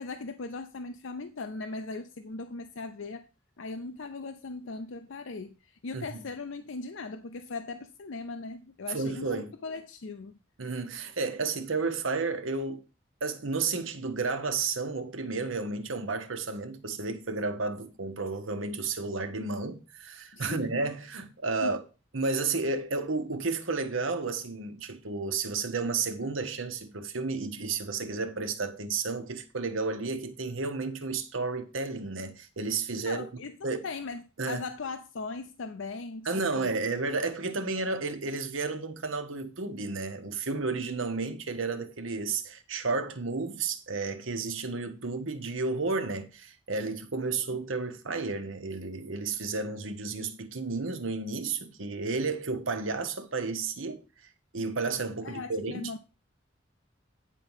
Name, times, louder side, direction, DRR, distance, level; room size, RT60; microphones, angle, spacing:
voice 1, 0.0-3.3 3.6-10.3 20.3-20.7 21.6-21.7 33.0-36.7 55.2-56.0, left 3 dB, 75° left, 0.6 m, -39 dB
voice 2, 8.9-9.5 10.6-12.8 13.2-21.8 22.1-33.3 33.6-33.9 34.4-34.6 36.2-54.0 54.5-55.9, right 4 dB, 80° right, 1.2 m, -32 dB
9.3 x 4.6 x 5.5 m
head